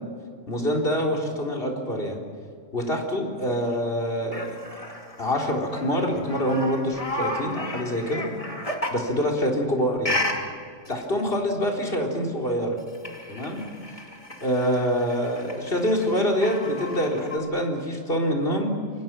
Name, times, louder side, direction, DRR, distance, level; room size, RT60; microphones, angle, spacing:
voice 1, 0.5-2.2 2.7-4.5 5.2-8.3 8.9-10.2 10.9-12.8 13.3-13.6 14.4-18.7, equal, 45° left, 0 dB, 4.1 m, -25 dB
sound 1, 4.3-9.1 10.0-10.4 10.8-11.0 12.8-17.4, left 1 dB, 25° left, 2.7 m, -34 dB
27.5 x 25.0 x 6.2 m, 2.2 s
omnidirectional pair, 1.4 m